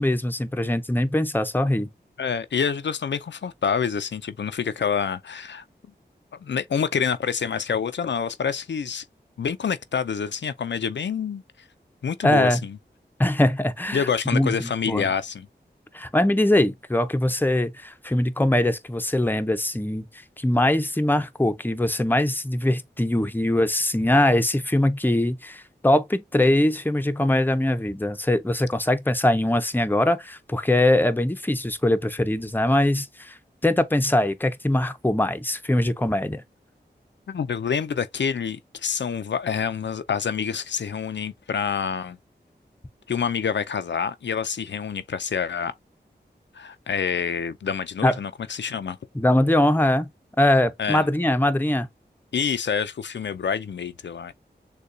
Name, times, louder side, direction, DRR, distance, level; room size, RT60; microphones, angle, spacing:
voice 1, 0.0-1.9 12.2-12.6 13.2-15.1 15.9-20.1 20.4-36.4 48.0-48.2 49.1-50.1 50.4-51.9, left 1 dB, 10° left, 0.6 m, -22 dB
voice 2, 2.2-5.6 6.4-9.0 9.4-11.4 12.0-12.8 13.9-15.5 37.3-42.2 43.1-45.7 46.6-49.0 50.8-51.0 52.3-54.3, left 7 dB, 85° left, 0.4 m, -27 dB
6.6 x 2.3 x 2.6 m
wide cardioid pair, 65°, 18 cm